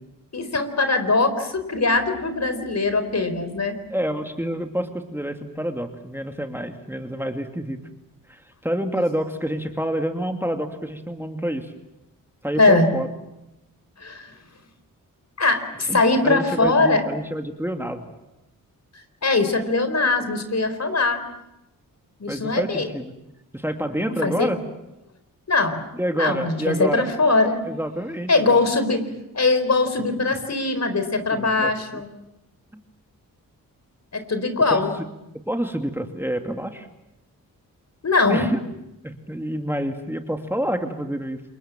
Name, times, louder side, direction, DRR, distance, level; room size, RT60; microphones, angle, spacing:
voice 1, 0.3-3.7 12.6-12.9 14.0-14.3 15.4-17.0 19.2-21.2 22.2-22.9 24.2-24.5 25.5-25.8 26.2-27.6 28.3-29.1 29.3-32.1 34.1-34.9 38.0-38.5, left 3 dB, 50° left, 9 dB, 4.4 m, -21 dB
voice 2, 3.9-7.8 8.3-11.7 12.4-13.1 15.9-18.1 22.3-23.1 23.5-24.6 25.9-27.1 27.7-28.6 31.3-32.0 32.7-32.8 34.7-34.8 35.5-36.9 38.3-38.6 39.0-41.4, equal, 5° right, 5 dB, 2.5 m, -28 dB
28.0 x 23.5 x 7.6 m, 0.90 s
cardioid pair, 55°, 35 cm